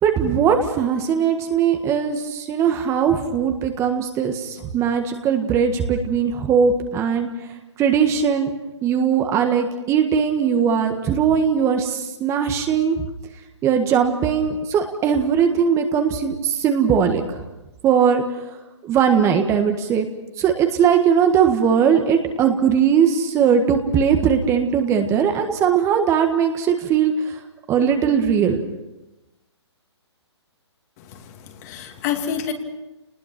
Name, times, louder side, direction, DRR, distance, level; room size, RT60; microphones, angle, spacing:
voice 1, 0.0-7.5 7.8-8.5 8.8-13.1 13.6-17.4 17.8-18.4 18.8-20.1 20.4-27.4 27.7-28.6, right 7 dB, 20° right, 5 dB, 1.7 m, -19 dB
voice 2, 31.0-32.5, left 8 dB, 35° left, 4 dB, 2.8 m, -29 dB
29.5 x 20.0 x 6.0 m, 1.0 s
hypercardioid pair, 135°, 15 cm